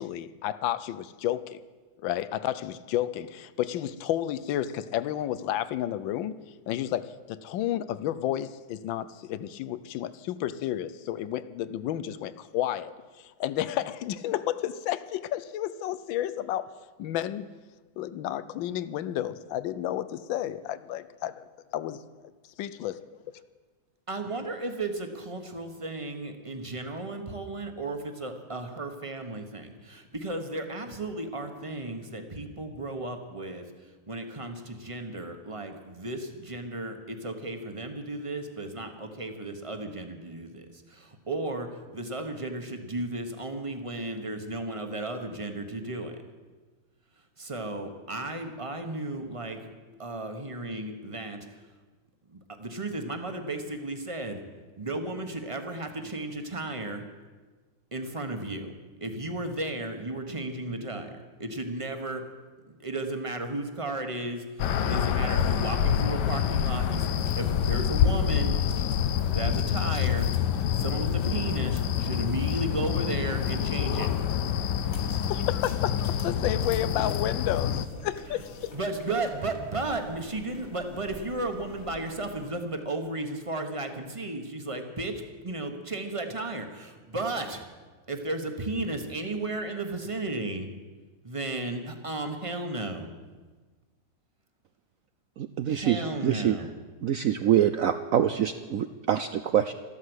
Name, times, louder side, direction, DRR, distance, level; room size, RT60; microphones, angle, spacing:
voice 1, 0.0-1.6 2.0-6.4 6.7-16.7 17.0-17.5 18.0-21.5 21.7-22.0 22.6-23.0 75.3-78.7, left 12 dB, 90° left, 15 dB, 1.4 m, -31 dB
voice 2, 24.1-33.7 34.1-46.2 47.4-49.6 50.0-51.5 52.3-54.4 54.8-57.0 57.9-58.7 59.0-61.1 61.4-62.2 62.7-68.6 69.3-70.3 70.7-74.1 78.7-87.6 88.1-90.7 91.2-93.1 95.7-96.7, right 2 dB, 20° right, 5 dB, 1.2 m, -34 dB
sound 1, 64.6-77.9, left 8 dB, 70° left, 1.3 m, -27 dB
sound 2, 67.1-82.5, left 2 dB, 40° left, 1.7 m, -47 dB
voice 3, 95.4-96.6 97.0-99.7, right 10 dB, 75° right, 10 dB, 0.7 m, -25 dB
13.5 x 12.5 x 8.0 m, 1.3 s
omnidirectional pair, 2.0 m